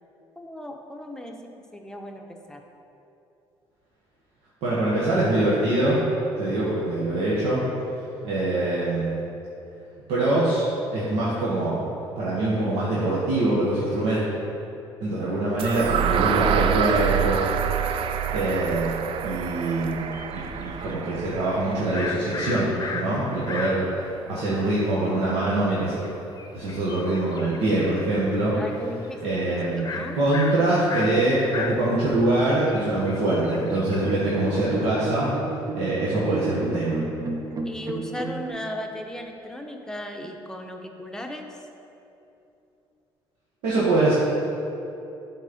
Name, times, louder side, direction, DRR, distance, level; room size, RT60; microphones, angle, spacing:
voice 1, 0.4-2.6 28.6-30.2 37.6-41.5, left 1 dB, 5° left, 2 dB, 0.8 m, -36 dB
voice 2, 4.6-6.0 6.4-7.6 8.2-9.1 10.1-11.8 12.2-14.2 15.0-17.4 18.0-18.9 19.2-20.0 20.3-23.8 24.3-26.0 26.5-28.6 29.2-29.9 30.1-35.3 35.7-37.0 43.6-44.1, right 2 dB, 85° right, -8 dB, 1.3 m, -24 dB
sound 1, 15.6-23.5, right 9 dB, 60° right, 0.4 m, -27 dB
sound 2, 19.8-24.0 24.5-24.6 24.7-27.9 28.2-29.1 29.3-29.4 29.8-34.6, left 5 dB, 40° left, 0.7 m, -36 dB
sound 3, 33.4-38.5, right 3 dB, 40° right, 0.8 m, -32 dB
8.0 x 4.3 x 5.2 m, 2.8 s
cardioid pair, 85°, 10 cm